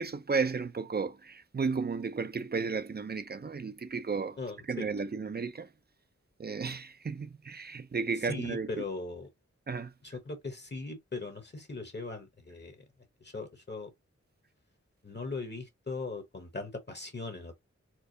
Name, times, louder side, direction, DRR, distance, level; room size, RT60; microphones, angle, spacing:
voice 1, 0.0-4.4 4.7-5.7 6.4-8.8 9.7-9.9, right 5 dB, 35° right, 0.5 m, -33 dB
voice 2, 4.4-4.9 8.2-9.3 10.0-12.8 13.2-13.9 15.0-17.6, left 3 dB, 35° left, 0.9 m, -39 dB
4.5 x 2.0 x 2.6 m
wide cardioid pair, 60°, 30 cm